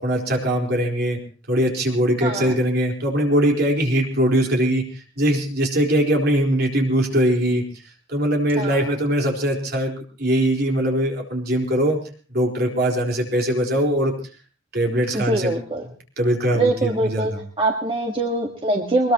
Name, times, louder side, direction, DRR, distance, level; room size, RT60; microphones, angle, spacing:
voice 1, 0.0-1.2 1.5-4.8 5.2-7.6 8.1-12.0 12.3-14.1 14.7-15.6 16.2-17.4, right 1 dB, 55° right, 1 dB, 4.3 m, -21 dB
voice 2, 2.2-2.5 8.6-8.9 15.1-15.8 16.5-19.1, right 2 dB, 25° right, 1 dB, 1.6 m, -23 dB
22.5 x 21.0 x 3.0 m, 0.38 s
head